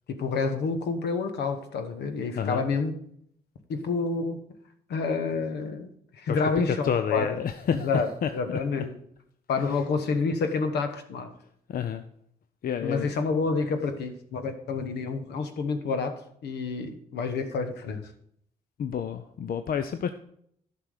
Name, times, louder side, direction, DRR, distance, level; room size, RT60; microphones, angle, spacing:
voice 1, 0.1-2.9 3.7-4.4 4.9-5.9 6.2-7.4 7.7-8.1 8.3-9.0 9.5-11.3 12.8-18.1, left 4 dB, 75° left, 8 dB, 1.1 m, -28 dB
voice 2, 2.3-2.7 6.3-6.4 6.7-7.9 8.2-8.6 9.7-9.8 11.7-12.0 12.6-13.1 18.8-20.1, left 8 dB, 60° left, 9 dB, 0.6 m, -29 dB
11.0 x 5.9 x 4.9 m, 0.68 s
supercardioid pair, 50°, 17 cm